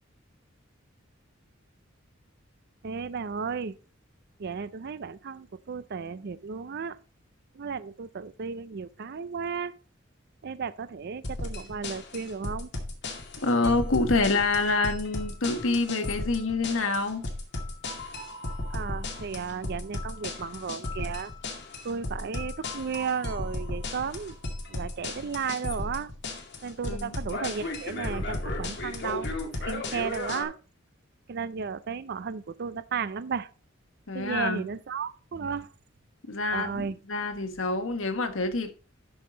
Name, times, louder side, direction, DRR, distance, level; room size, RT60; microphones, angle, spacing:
voice 1, 2.8-3.8 4.4-7.0 7.5-9.7 10.4-12.7 18.7-21.3 21.8-24.4 24.7-26.1 26.6-29.3 29.6-30.6 31.3-33.5 34.1-35.7 36.5-37.0, right 6 dB, 55° right, 0.5 m, -34 dB
sound 1, 11.2-30.4, left 2 dB, 60° left, 2.2 m, -35 dB
voice 2, 13.4-17.2 26.9-27.1 34.1-34.6 36.3-38.7, left 3 dB, 80° left, 1.5 m, -27 dB
12.5 x 5.7 x 3.9 m
head